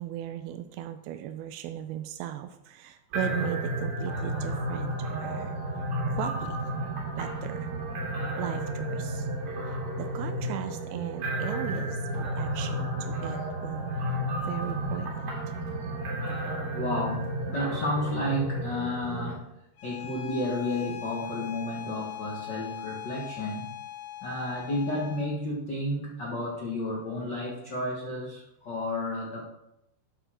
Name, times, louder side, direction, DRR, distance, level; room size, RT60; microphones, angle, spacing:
voice 1, 0.0-5.6 6.1-6.6 7.2-7.7 8.4-9.3 9.7-13.9 14.5-15.3, right 10 dB, 85° right, 8 dB, 2.5 m, -37 dB
sound 1, 3.1-19.3, right 1 dB, 45° right, 2.7 m, -32 dB
voice 2, 16.3-19.4 19.8-23.7 24.2-29.4, left 1 dB, 50° left, -4 dB, 1.3 m, -32 dB
Bowed string instrument, 19.8-25.4, left 12 dB, 75° left, 2.5 m, -40 dB
11.5 x 6.8 x 4.4 m, 0.83 s
omnidirectional pair, 4.3 m